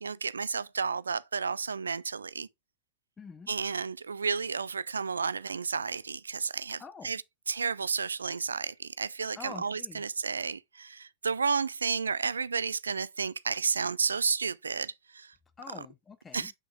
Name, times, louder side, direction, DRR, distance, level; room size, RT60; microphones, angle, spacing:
voice 1, 0.0-2.5 3.5-15.3 16.3-16.5, right 5 dB, 75° right, 0.4 m, -32 dB
voice 2, 3.2-3.5 6.8-7.1 9.4-10.0 15.6-16.5, left 5 dB, 15° left, 0.6 m, -46 dB
8.1 x 5.8 x 2.4 m
figure-of-eight pair, 90°, 0 cm